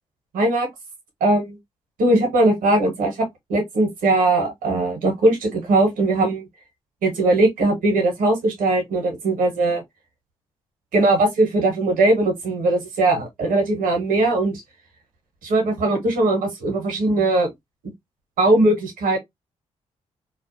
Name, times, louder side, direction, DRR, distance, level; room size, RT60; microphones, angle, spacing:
voice 1, 0.3-0.7 1.2-1.6 2.0-6.5 7.0-9.8 10.9-14.6 15.4-17.5 18.4-19.2, right 2 dB, 75° right, 1.0 m, -20 dB
2.4 x 2.1 x 2.6 m
hypercardioid pair, 40°, 14 cm